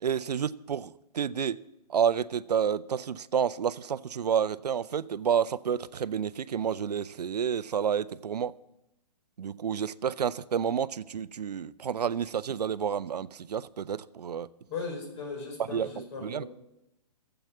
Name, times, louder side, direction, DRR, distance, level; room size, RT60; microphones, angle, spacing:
voice 1, 0.0-1.6 1.9-8.5 9.4-14.5 15.6-16.5, right 8 dB, 75° right, 18 dB, 0.6 m, -30 dB
voice 2, 14.7-16.5, left 4 dB, 45° left, 2 dB, 4.9 m, -37 dB
13.0 x 8.0 x 8.6 m, 0.87 s
figure-of-eight pair, 130°, 21 cm